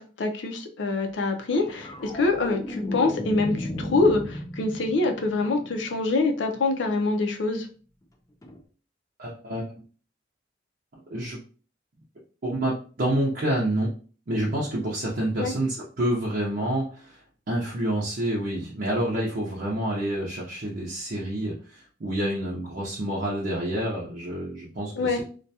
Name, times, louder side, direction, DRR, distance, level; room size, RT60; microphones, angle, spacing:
voice 1, 0.0-7.7 15.4-15.5 24.9-25.2, left 3 dB, 75° left, 4 dB, 0.5 m, -25 dB
sound 1, 1.5-6.0 8.4-8.6, left 1 dB, 20° left, 0.4 m, -34 dB
voice 2, 9.2-9.7 11.1-11.4 12.4-13.9 14.3-17.2 17.5-25.2, right 1 dB, 50° right, -5 dB, 0.6 m, -28 dB
2.4 x 2.2 x 2.6 m, 0.39 s
head